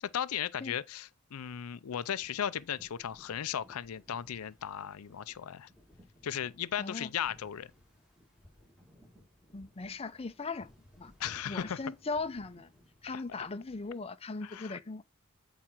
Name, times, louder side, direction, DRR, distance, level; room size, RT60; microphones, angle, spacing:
voice 1, 0.0-5.7 6.2-7.7 11.2-11.8 13.1-13.5 14.4-14.8, left 9 dB, 90° left, 0.5 m, -36 dB
sound 1, 2.1-14.0, equal, 5° right, 2.2 m, -61 dB
voice 2, 6.8-7.1 9.5-10.7 11.0-11.1 11.5-12.7 13.0-15.0, left 3 dB, 25° left, 0.6 m, -38 dB
8.7 x 4.8 x 4.4 m
head